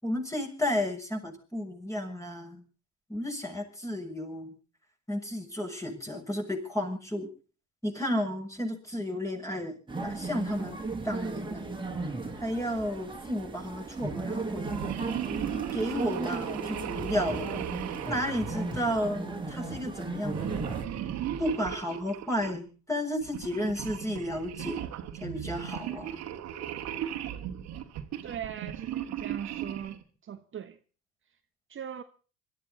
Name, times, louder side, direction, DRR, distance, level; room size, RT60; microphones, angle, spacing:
voice 1, 0.0-2.6 3.1-4.5 5.1-7.3 7.8-10.8 11.0-11.7 12.4-14.9 15.5-17.6 18.0-20.8 21.4-24.8 25.2-26.2, left 1 dB, 10° left, 6.9 m, -33 dB
sound 1, 9.9-20.8, right 3 dB, 15° right, 3.4 m, -36 dB
sound 2, 14.6-19.4 20.3-22.6 23.2-30.0, right 10 dB, 60° right, 2.1 m, -37 dB
voice 2, 28.2-30.8 31.7-32.0, right 9 dB, 40° right, 1.3 m, -39 dB
25.5 x 13.0 x 4.1 m
hypercardioid pair, 65°, 31 cm